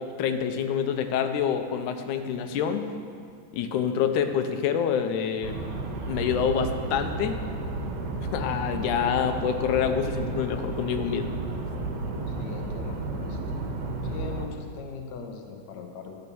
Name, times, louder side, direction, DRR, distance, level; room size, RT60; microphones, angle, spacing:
voice 1, 0.2-2.9 3.5-5.6 6.1-7.5 8.3-11.4, left 8 dB, 85° left, 7 dB, 2.2 m, -27 dB
sound 1, 5.4-14.5, right 3 dB, 80° right, 2.7 m, -32 dB
voice 2, 12.3-13.8 14.0-16.2, left 5 dB, 70° left, 4 dB, 1.0 m, -40 dB
12.5 x 7.3 x 7.0 m, 2.2 s
omnidirectional pair, 3.4 m